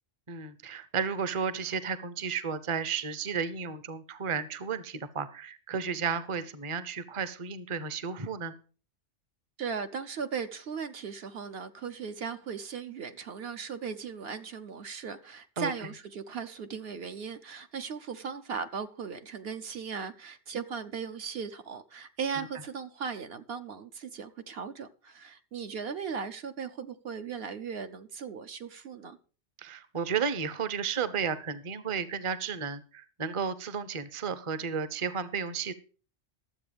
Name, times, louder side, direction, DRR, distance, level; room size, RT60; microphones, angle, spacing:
voice 1, 0.3-8.5 15.6-15.7 29.6-35.7, right 6 dB, 30° right, 0.7 m, -33 dB
voice 2, 9.6-29.2, right 6 dB, 60° right, 0.9 m, -37 dB
12.0 x 7.7 x 5.1 m
omnidirectional pair, 1.2 m